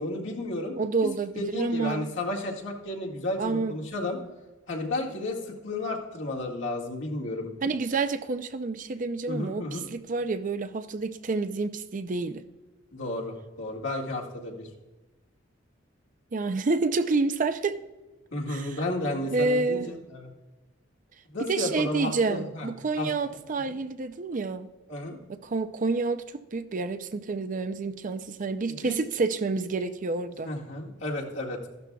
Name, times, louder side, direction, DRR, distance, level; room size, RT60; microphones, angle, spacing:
voice 1, 0.0-0.7 1.0-1.1 1.3-4.2 4.7-7.5 9.3-9.8 12.9-14.7 18.3-20.3 21.3-22.7 23.0-23.1 24.9-25.2 28.7-29.0 30.4-31.7, left 2 dB, 75° left, -2 dB, 1.9 m, -32 dB
voice 2, 0.8-2.1 3.4-3.8 7.6-12.4 16.3-17.8 18.5-18.8 19.3-19.9 21.4-24.7 25.3-30.5, right 3 dB, 45° right, 10 dB, 0.5 m, -29 dB
15.0 x 12.0 x 2.3 m, 1.1 s
head